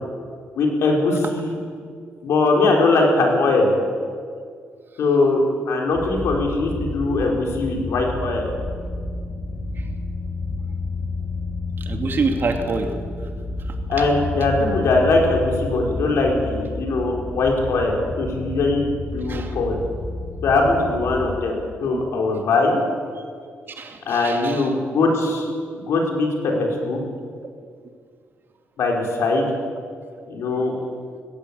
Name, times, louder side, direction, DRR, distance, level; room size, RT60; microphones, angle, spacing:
voice 1, 0.5-1.6 2.2-3.8 5.0-8.5 13.9-19.8 20.4-22.8 24.1-25.5 25.7-27.0 28.8-29.5 30.3-30.7, left 3 dB, 80° left, 0 dB, 5.0 m, -21 dB
sound 1, 5.9-21.4, left 3 dB, 35° left, 5.3 m, -30 dB
voice 2, 11.9-12.9 19.3-19.5 21.9-22.0 23.1-23.2 23.8-24.7, right 4 dB, 50° right, 4 dB, 2.9 m, -26 dB
19.5 x 16.5 x 8.6 m, 2.1 s
cardioid pair, 95°, 5 cm